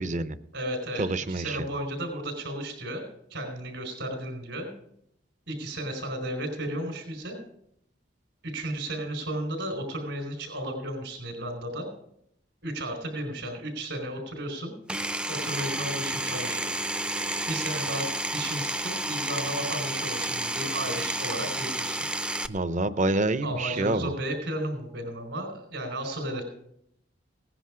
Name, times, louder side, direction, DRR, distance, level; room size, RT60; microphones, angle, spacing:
voice 1, 0.0-0.3 1.0-1.6 22.5-24.1, right 2 dB, 40° right, 14 dB, 0.7 m, -27 dB
voice 2, 0.5-3.0 3.3-4.7 5.5-7.4 8.4-11.9 12.6-14.7 15.3-16.7 17.5-18.1 18.3-22.0 23.4-26.4, right 1 dB, 75° right, 2 dB, 4.4 m, -34 dB
Power tool, 14.9-22.5, right 1 dB, 5° right, 0.4 m, -31 dB
18.0 x 10.0 x 4.9 m, 0.73 s
head